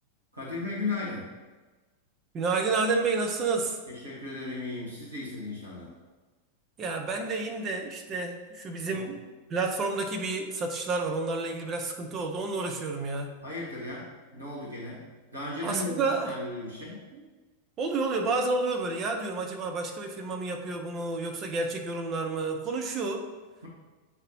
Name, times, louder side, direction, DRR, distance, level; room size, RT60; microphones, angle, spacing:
voice 1, 0.3-1.3 3.9-5.9 8.9-9.1 13.4-15.1 15.3-17.1, left 2 dB, 85° right, -6 dB, 1.9 m, -36 dB
voice 2, 2.3-3.8 6.8-9.2 9.5-13.4 15.6-16.4 17.1-17.2 17.8-23.3, right 3 dB, 30° right, 3 dB, 0.8 m, -30 dB
9.0 x 3.9 x 3.1 m, 1.3 s
figure-of-eight pair, 90°, 0 cm